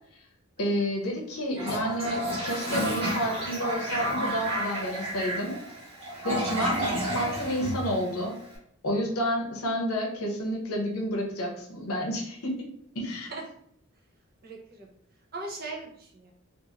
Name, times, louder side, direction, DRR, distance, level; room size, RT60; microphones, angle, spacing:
voice 1, 0.6-5.6 6.2-8.3 8.8-12.7 12.9-13.3, equal, 75° left, 1 dB, 0.7 m, -30 dB
Toilet flush, 1.5-8.5, equal, 25° right, 1.0 m, -31 dB
voice 2, 13.1-13.4 14.4-14.9 15.3-16.3, right 3 dB, 40° right, -1 dB, 0.6 m, -39 dB
2.8 x 2.5 x 2.4 m, 0.70 s
head